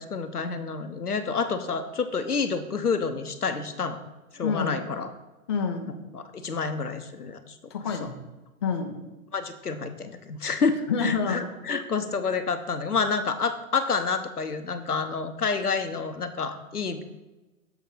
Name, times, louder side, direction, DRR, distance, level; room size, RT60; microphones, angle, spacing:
voice 1, 0.0-4.0 4.3-5.1 6.1-7.5 8.0-8.1 9.3-17.1, left 5 dB, 90° left, 9 dB, 0.8 m, -29 dB
voice 2, 4.4-4.8 5.5-5.9 7.7-8.1 8.6-9.0 10.9-11.4, left 5 dB, 20° left, 4 dB, 0.4 m, -27 dB
7.1 x 6.0 x 3.9 m, 1.1 s
figure-of-eight pair, 115°, 44 cm